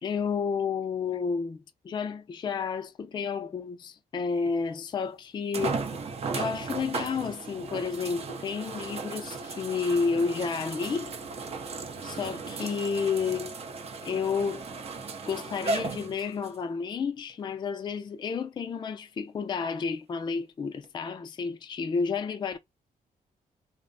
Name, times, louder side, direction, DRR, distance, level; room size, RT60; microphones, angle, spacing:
voice 1, 0.0-1.6 1.8-5.8 6.3-11.1 12.0-13.6 14.0-14.6 15.3-22.6, left 5 dB, 30° left, 0.3 m, -31 dB
sound 1, 4.5-4.6 5.5-16.6 17.3-17.4 20.8-20.9, right 4 dB, 40° right, 0.5 m, -36 dB
2.5 x 2.0 x 2.5 m
cardioid pair, 100°, 15 cm